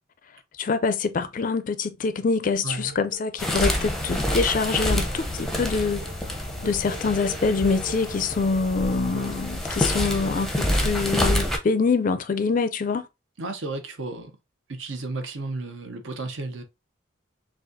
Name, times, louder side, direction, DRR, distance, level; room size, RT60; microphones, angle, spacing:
voice 1, 0.6-6.1 6.6-13.0, left 4 dB, 40° left, 0.4 m, -25 dB
sound 1, 2.5-9.5, right 5 dB, 85° right, 1.7 m, -47 dB
voice 2, 2.6-2.9 13.4-14.3 14.7-16.6, right 2 dB, 70° right, 0.8 m, -33 dB
sound 2, 3.4-11.6, equal, ahead, 0.6 m, -27 dB
6.2 x 2.4 x 2.6 m
head